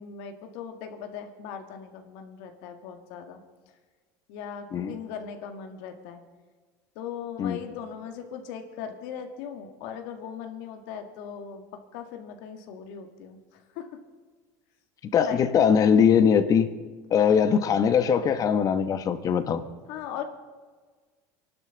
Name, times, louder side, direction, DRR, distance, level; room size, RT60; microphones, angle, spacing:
voice 1, 0.0-3.4 4.3-6.2 7.0-11.6 11.9-13.9 15.2-15.5 19.9-20.2, left 8 dB, 75° left, 5 dB, 1.8 m, -39 dB
voice 2, 15.1-16.7 17.1-19.6, left 7 dB, 40° left, 10 dB, 1.2 m, -21 dB
25.0 x 12.0 x 4.0 m, 1.5 s
supercardioid pair, 110°, 9 cm